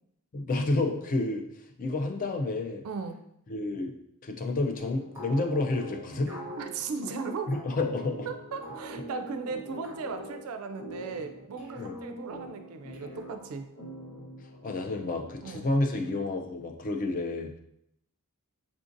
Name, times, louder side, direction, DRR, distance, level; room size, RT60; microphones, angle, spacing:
voice 1, 0.3-1.4 1.8-2.8 3.5-3.9 4.2-6.4 7.5-8.3 11.8-12.0 14.6-17.6, left 2 dB, 35° left, 4 dB, 0.3 m, -30 dB
voice 2, 2.8-3.2 6.6-7.5 8.3-13.6 15.4-15.7, right 4 dB, 70° right, 7 dB, 0.3 m, -37 dB
sound 1, 4.8-16.6, equal, 75° left, 1.0 m, -45 dB
sound 2, 5.1-5.5 6.3-6.6 7.5-7.8 8.6-8.9 9.8-10.2 11.6-12.1 12.9-13.6, right 2 dB, 10° right, 0.7 m, -48 dB
3.5 x 2.5 x 2.5 m, 0.76 s
head